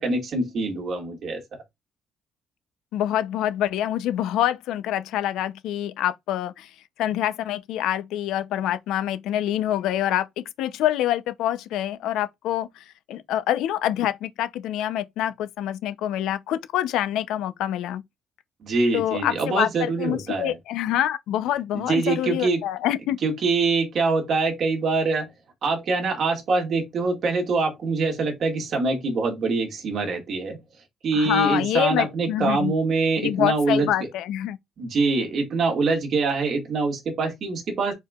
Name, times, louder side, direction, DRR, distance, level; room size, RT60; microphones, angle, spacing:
voice 1, 0.0-1.4 18.6-20.6 21.7-22.6 23.2-25.3 25.6-30.6 31.0-33.9 34.8-37.9, right 3 dB, 45° right, 2.0 m, -24 dB
voice 2, 2.9-6.7 7.0-18.0 18.9-23.2 31.1-32.7 33.2-34.6, left 12 dB, 90° left, 0.6 m, -26 dB
4.7 x 4.6 x 2.4 m
cardioid pair, 160°, 0 cm